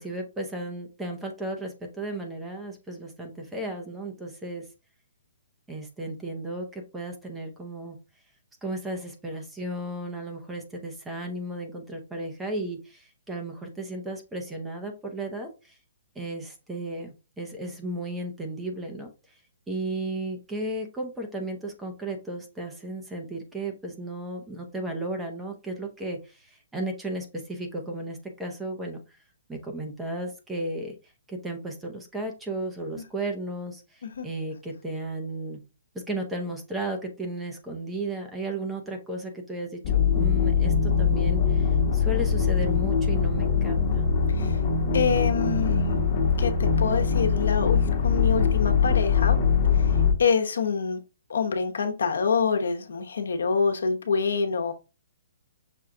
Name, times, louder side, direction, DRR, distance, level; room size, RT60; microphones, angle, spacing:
voice 1, 0.0-4.6 5.7-8.0 8.6-15.8 16.2-19.1 19.7-29.0 29.5-30.9 31.3-35.6 35.9-43.8, right 1 dB, 5° right, 2 dB, 0.6 m, -34 dB
sound 1, 39.8-50.1, left 6 dB, 30° left, 0.9 m, -22 dB
voice 2, 44.9-46.0 46.4-49.4 49.7-49.9 50.2-51.0 51.3-54.7, left 5 dB, 85° left, 5 dB, 1.0 m, -26 dB
6.0 x 2.3 x 3.8 m, 0.30 s
hypercardioid pair, 170°, 0 cm